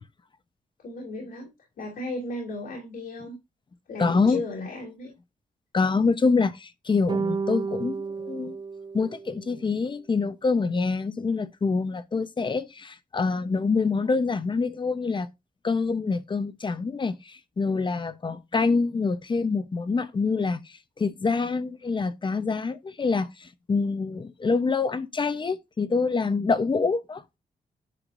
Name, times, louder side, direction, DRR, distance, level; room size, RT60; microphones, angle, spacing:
voice 1, 0.8-3.4 3.9-5.1, left 2 dB, 80° left, 3.0 m, -35 dB
voice 2, 4.0-4.4 5.7-8.6 8.9-15.3 15.6-20.6 21.0-27.4, left 4 dB, 30° left, 0.8 m, -26 dB
sound 1, 7.1-9.6, right 5 dB, 30° right, 0.3 m, -32 dB
10.0 x 5.7 x 2.6 m
wide cardioid pair, 125°, 15 cm